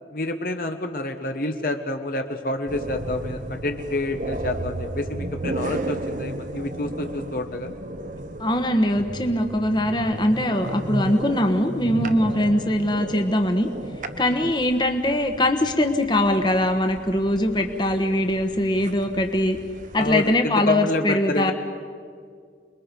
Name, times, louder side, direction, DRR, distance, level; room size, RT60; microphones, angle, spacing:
voice 1, 0.1-7.7 14.3-14.5 20.0-21.5, left 1 dB, 55° left, 5 dB, 1.1 m, -28 dB
sound 1, 2.7-20.4, right 1 dB, 45° right, 1.0 m, -34 dB
voice 2, 8.4-13.7 14.2-19.6 19.9-21.5, left 1 dB, 25° left, 6 dB, 1.3 m, -22 dB
28.0 x 21.5 x 5.3 m, 2.1 s
head